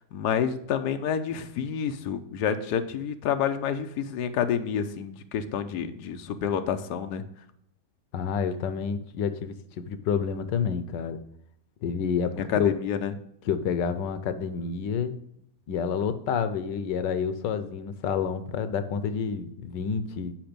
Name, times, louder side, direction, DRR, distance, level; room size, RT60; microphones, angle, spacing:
voice 1, 0.1-7.2 12.4-13.1, left 8 dB, 70° left, 7 dB, 1.2 m, -28 dB
voice 2, 8.1-11.2 11.8-12.7 13.5-15.2 15.7-20.3, left 6 dB, 90° left, 11 dB, 1.4 m, -29 dB
9.0 x 5.3 x 5.1 m, 0.76 s
omnidirectional pair, 1.8 m